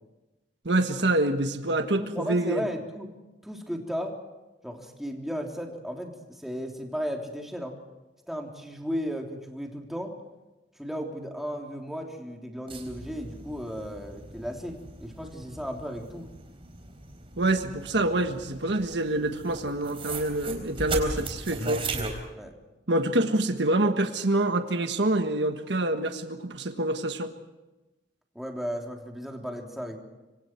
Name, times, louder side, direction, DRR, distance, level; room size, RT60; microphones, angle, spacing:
voice 1, 0.6-2.6 17.4-21.9 22.9-27.3, right 2 dB, 70° right, 7 dB, 1.5 m, -26 dB
voice 2, 2.0-3.1 3.4-4.2 4.6-7.8 8.3-10.1 10.8-16.3 22.4-22.5 28.3-30.0, equal, ahead, 1 dB, 3.3 m, -35 dB
sound 1, 12.7-22.1, right 3 dB, 30° right, 4.2 m, -38 dB
26.5 x 25.0 x 4.6 m, 1.1 s
head